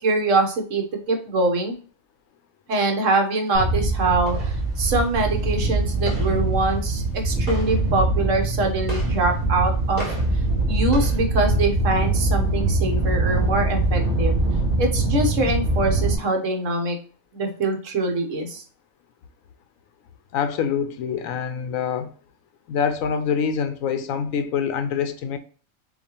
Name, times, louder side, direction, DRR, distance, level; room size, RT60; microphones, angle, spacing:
voice 1, 0.0-1.7 2.7-10.1 10.7-14.4 14.8-17.0 17.3-18.6, right 2 dB, 65° right, 1.3 m, -24 dB
sound 1, 3.5-16.1, right 2 dB, 40° right, 2.2 m, -23 dB
voice 2, 20.3-22.1 22.7-25.4, left 7 dB, 75° left, 1.0 m, -25 dB
7.0 x 2.4 x 2.9 m
omnidirectional pair, 1.5 m